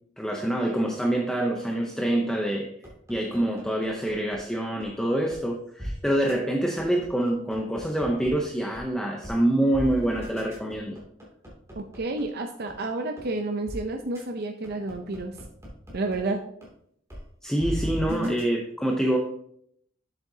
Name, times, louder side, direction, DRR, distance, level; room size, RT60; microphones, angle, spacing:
voice 1, 0.2-2.7 3.1-11.0 17.4-19.2, right 1 dB, 5° left, 0 dB, 0.6 m, -26 dB
sound 1, 2.8-4.4 4.8-4.9 5.3-5.4 5.8-5.9 6.3-6.4 6.8-8.3 8.7-8.8 9.2-9.4 9.7-12.2 12.7-12.8 13.2-13.3 13.7-13.8 14.1-14.2 14.6-16.2 16.6-16.7 17.1-17.2 17.6-18.4, equal, 15° right, 2.5 m, -36 dB
voice 2, 11.8-15.3 15.9-16.4 18.1-18.4, right 2 dB, 50° right, 4 dB, 0.6 m, -30 dB
7.7 x 7.3 x 2.8 m, 0.67 s
head